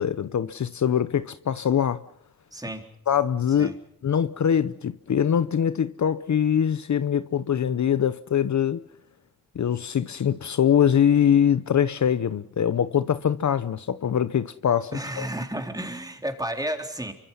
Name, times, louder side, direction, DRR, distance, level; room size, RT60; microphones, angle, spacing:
voice 1, 0.0-2.0 3.1-8.8 9.5-15.3, left 8 dB, 55° left, 0.9 m, -23 dB
voice 2, 2.5-2.9 3.6-3.7 14.9-17.1, right 1 dB, 10° right, 3.9 m, -32 dB
28.0 x 24.5 x 5.7 m
cardioid pair, 80°, 35 cm